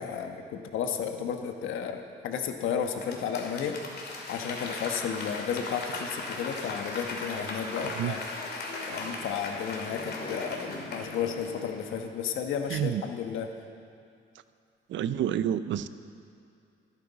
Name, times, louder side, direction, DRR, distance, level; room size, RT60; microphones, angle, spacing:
voice 1, 0.0-3.7 4.3-8.2 8.9-13.5, left 7 dB, 85° left, 5 dB, 1.2 m, -33 dB
Applause / Crowd, 2.8-12.3 12.6-12.7, left 2 dB, 55° left, 2.4 m, -38 dB
voice 2, 12.7-13.0 14.9-15.9, right 10 dB, 70° right, 13 dB, 0.6 m, -28 dB
25.5 x 9.6 x 4.1 m, 2.5 s
cardioid pair, 90°, 20 cm